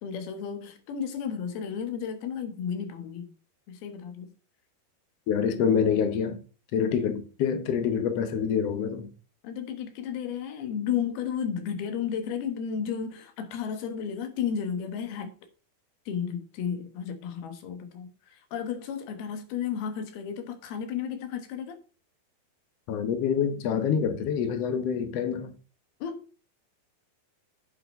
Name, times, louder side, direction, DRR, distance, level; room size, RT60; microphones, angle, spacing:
voice 1, 0.0-3.3 3.7-4.3 9.4-15.3 16.1-21.8 26.0-26.3, left 7 dB, 85° left, 3.3 m, -33 dB
voice 2, 5.3-6.4 6.7-9.1 22.9-25.5, left 7 dB, 65° left, 1.7 m, -26 dB
8.7 x 6.3 x 5.2 m
omnidirectional pair, 4.3 m